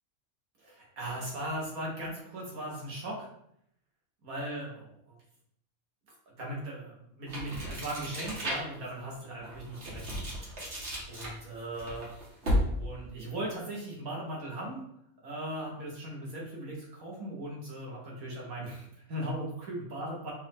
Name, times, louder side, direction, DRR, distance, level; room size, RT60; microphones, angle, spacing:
voice 1, 0.6-3.3 4.2-4.9 6.3-10.2 11.1-12.1 12.7-14.8 15.2-20.3, right 1 dB, 75° right, -3 dB, 1.8 m, -38 dB
sound 1, 7.3-8.9 9.4-12.9, equal, 50° right, 1.6 m, -33 dB
5.2 x 2.7 x 3.6 m, 0.72 s
omnidirectional pair, 1.5 m